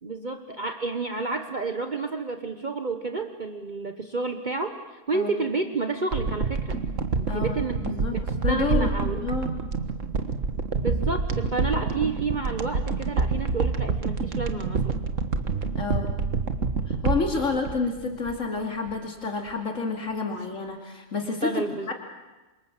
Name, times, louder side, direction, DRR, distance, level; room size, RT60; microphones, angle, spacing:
voice 1, 0.0-6.8 7.2-7.8 8.1-9.3 10.8-15.0 17.4-17.6 20.3-20.4 21.4-21.9, right 3 dB, 40° right, 6 dB, 1.4 m, -30 dB
sound 1, 6.1-18.6 18.9-19.0, right 4 dB, 80° right, 1.9 m, -27 dB
voice 2, 7.3-8.2 8.4-8.9 9.2-9.5 15.7-16.1 16.9-21.9, left 4 dB, 85° left, 2 dB, 3.1 m, -29 dB
28.0 x 26.0 x 7.5 m, 1.2 s
omnidirectional pair, 1.3 m